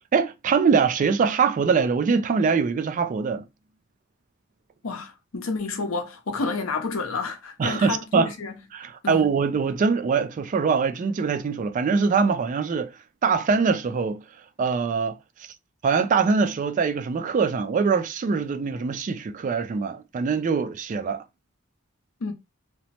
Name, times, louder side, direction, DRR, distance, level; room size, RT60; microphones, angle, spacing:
voice 1, 0.1-3.5 7.6-8.3 8.7-12.9 13.2-14.2 14.6-15.2 15.8-21.2, right 5 dB, 40° right, 0.3 m, -23 dB
voice 2, 4.8-8.6 9.0-9.2 22.2-22.3, left 3 dB, 80° left, 0.7 m, -30 dB
2.9 x 2.0 x 2.7 m
head